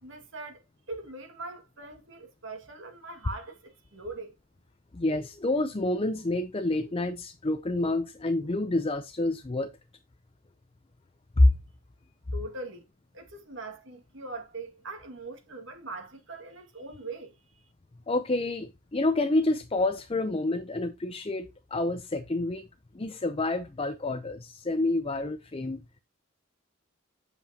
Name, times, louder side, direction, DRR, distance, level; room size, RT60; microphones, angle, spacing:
voice 1, 0.0-4.3 12.3-12.8 13.1-17.6, right 2 dB, 60° right, 2.0 m, -41 dB
voice 2, 4.9-9.7 11.4-11.5 18.1-22.7 22.9-25.8, left 2 dB, 25° left, 0.5 m, -28 dB
8.2 x 6.9 x 2.8 m
head